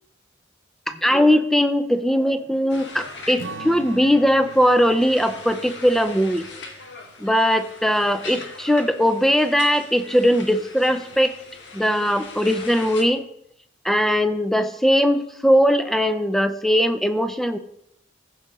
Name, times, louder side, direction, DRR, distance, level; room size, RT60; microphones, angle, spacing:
voice 1, 1.0-6.5 7.2-11.3 11.7-13.2 13.8-17.6, equal, ahead, 10 dB, 0.5 m, -20 dB
sound 1, 2.7-13.0, left 3 dB, 75° left, 1.4 m, -40 dB
Strum, 3.4-8.0, right 3 dB, 75° right, 0.7 m, -42 dB
15.0 x 5.1 x 4.1 m, 0.78 s
head